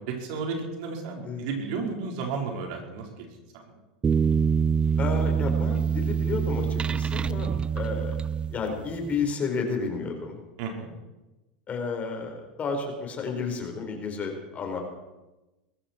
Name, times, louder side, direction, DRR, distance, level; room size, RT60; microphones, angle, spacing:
voice 1, 0.1-3.3 10.6-10.9, right 4 dB, 65° right, 1 dB, 4.5 m, -33 dB
sound 1, 4.0-9.0, right 6 dB, 20° right, 0.5 m, -25 dB
voice 2, 5.0-7.5 7.7-10.4 11.7-14.8, left 4 dB, 30° left, 3 dB, 4.5 m, -31 dB
21.0 x 14.5 x 4.5 m, 1.1 s
hypercardioid pair, 105°, 5 cm